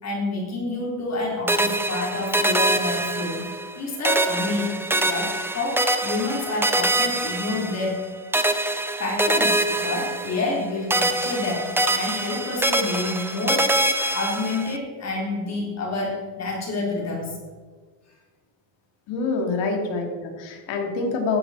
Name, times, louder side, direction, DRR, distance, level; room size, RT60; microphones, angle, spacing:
voice 1, 0.0-3.5 3.8-4.7 5.0-8.1 9.0-13.8 14.1-17.4 19.5-19.7, left 2 dB, 30° left, -2 dB, 3.9 m, -28 dB
sound 1, 1.5-3.8 4.0-8.0 8.3-10.6 10.9-14.8, right 1 dB, 5° right, 0.7 m, -24 dB
voice 2, 19.1-21.4, left 3 dB, 60° left, 2 dB, 3.3 m, -26 dB
14.5 x 12.5 x 4.4 m, 1.4 s
cardioid pair, 155°, 50 cm